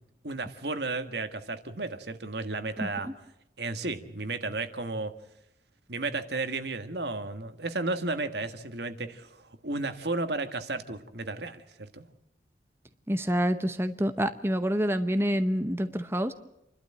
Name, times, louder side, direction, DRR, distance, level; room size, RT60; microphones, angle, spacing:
voice 1, 0.2-3.1 3.6-5.1 5.9-12.0, right 3 dB, 70° right, 9 dB, 1.6 m, -33 dB
voice 2, 2.8-3.1 13.1-16.3, equal, 15° right, 9 dB, 0.8 m, -27 dB
29.0 x 12.5 x 8.9 m, 0.85 s
head